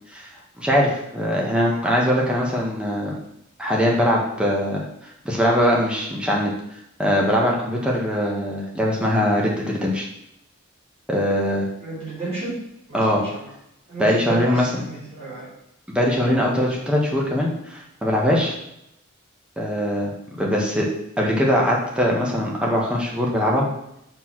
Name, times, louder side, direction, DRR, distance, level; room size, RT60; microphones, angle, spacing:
voice 1, 0.6-3.1 3.6-4.8 5.2-6.5 7.0-10.0 11.1-11.7 12.9-13.2 14.0-14.8 15.9-18.5 19.6-20.1 20.4-20.9 21.2-23.7, equal, 5° right, -3 dB, 1.7 m, -21 dB
voice 2, 11.8-12.6 12.9-13.2 13.9-14.6 14.9-15.5, right 3 dB, 30° right, -9 dB, 3.6 m, -31 dB
6.8 x 4.7 x 6.2 m, 0.79 s
head